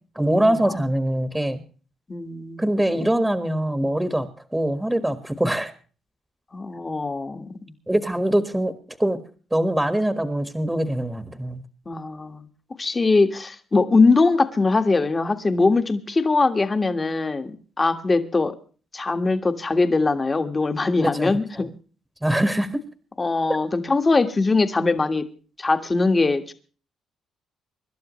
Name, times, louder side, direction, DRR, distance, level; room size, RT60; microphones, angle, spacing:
voice 1, 0.1-1.6 2.6-4.3 4.5-5.7 7.9-9.2 9.5-11.6 21.0-21.4 22.2-22.8, right 1 dB, 10° right, 9 dB, 1.6 m, -23 dB
voice 2, 2.1-2.6 6.5-7.6 11.8-12.5 12.8-18.5 18.9-21.7 22.5-22.6 23.2-25.2 25.6-26.5, left 3 dB, 25° left, 7 dB, 1.6 m, -21 dB
25.5 x 12.0 x 3.1 m, 0.39 s
cardioid pair, 90°, 0 cm